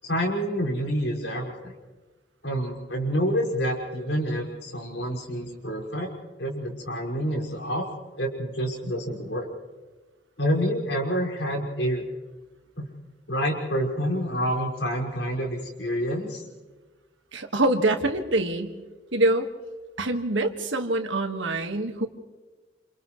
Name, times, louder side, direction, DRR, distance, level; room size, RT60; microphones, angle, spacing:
voice 1, 0.0-1.7 2.4-6.1 6.4-7.9 8.2-9.5 10.4-12.0 12.8-12.9 13.3-16.5, equal, 75° left, -2 dB, 5.9 m, -28 dB
voice 2, 17.3-18.7 19.1-19.5 20.0-22.1, right 2 dB, 85° right, 5 dB, 1.9 m, -25 dB
29.5 x 28.5 x 3.3 m, 1.3 s
head